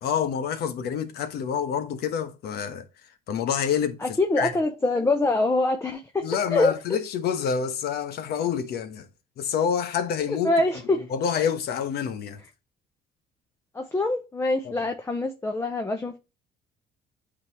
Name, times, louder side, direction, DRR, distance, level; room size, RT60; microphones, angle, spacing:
voice 1, 0.0-2.9 3.3-4.5 6.2-9.1 9.4-10.5 11.1-12.4 14.6-14.9, left 7 dB, 70° left, 1.1 m, -27 dB
voice 2, 4.0-6.8 10.3-11.0 13.7-16.1, left 2 dB, 15° left, 0.8 m, -24 dB
8.7 x 4.0 x 2.9 m
cardioid pair, 110°, 17 cm